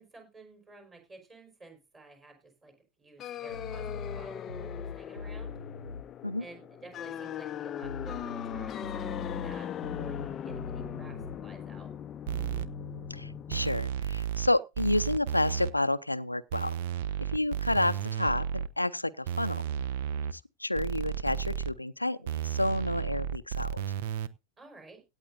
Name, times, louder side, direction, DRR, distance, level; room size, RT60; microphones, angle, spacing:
voice 1, 0.0-5.6 6.4-11.9 24.6-25.0, right 3 dB, 20° right, 4.8 m, -52 dB
sound 1, 3.2-13.7, left 9 dB, 25° left, 0.5 m, -39 dB
sound 2, 3.5-6.1 7.8-11.4 12.5-14.1, left 4 dB, 80° right, 1.8 m, -42 dB
sound 3, 12.3-12.7 13.5-14.5 14.8-15.7 16.5-18.7 19.3-20.3 20.8-21.7 22.3-24.3, right 9 dB, 55° right, 0.7 m, -33 dB
voice 2, 13.1-16.7 17.2-19.6 20.3-23.8, left 1 dB, 85° left, 0.5 m, -30 dB
17.0 x 9.0 x 2.7 m
figure-of-eight pair, 90°, 0 cm